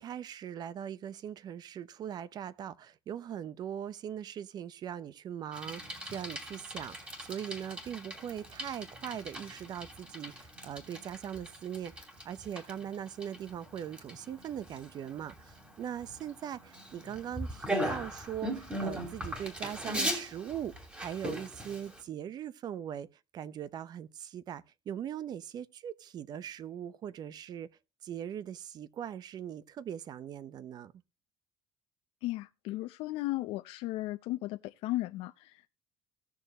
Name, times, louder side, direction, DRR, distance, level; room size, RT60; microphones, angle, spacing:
voice 1, 0.0-23.1 23.3-27.7 28.0-30.9, right 9 dB, 45° right, 0.8 m, -40 dB
Bicycle, 5.5-22.0, right 1 dB, 10° right, 2.8 m, -40 dB
voice 2, 32.2-35.7, left 17 dB, 75° left, 0.6 m, -35 dB
17.5 x 6.7 x 2.9 m
cardioid pair, 140°, 10 cm